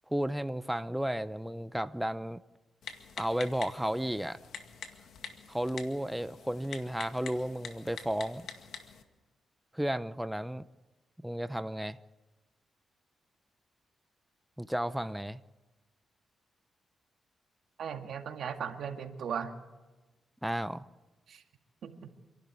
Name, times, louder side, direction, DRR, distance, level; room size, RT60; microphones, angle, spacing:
voice 1, 0.1-2.4 3.2-4.4 5.5-8.5 9.7-10.6 11.2-12.0 14.6-15.4 20.4-20.8, equal, 5° right, 0.7 m, -33 dB
Typing, 2.8-9.0, left 7 dB, 80° left, 2.0 m, -46 dB
voice 2, 17.8-19.5 21.3-21.4 21.8-21.9, right 7 dB, 75° right, 2.0 m, -37 dB
27.0 x 12.0 x 9.6 m
cardioid pair, 65°, 0 cm